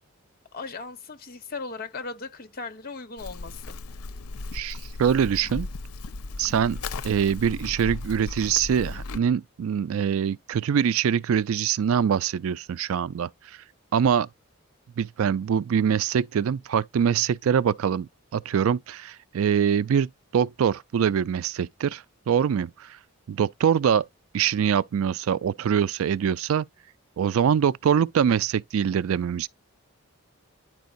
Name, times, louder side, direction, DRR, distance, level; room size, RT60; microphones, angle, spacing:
voice 1, 0.5-3.8, left 4 dB, 40° left, 1.1 m, -37 dB
Livestock farm animals working animals, 3.2-9.2, left 3 dB, 85° left, 0.6 m, -36 dB
voice 2, 4.5-5.7 6.4-13.3 13.9-14.3 15.0-22.9 23.3-24.1 24.3-26.7 27.2-29.5, right 8 dB, 70° right, 0.3 m, -24 dB
10.0 x 4.6 x 2.5 m
head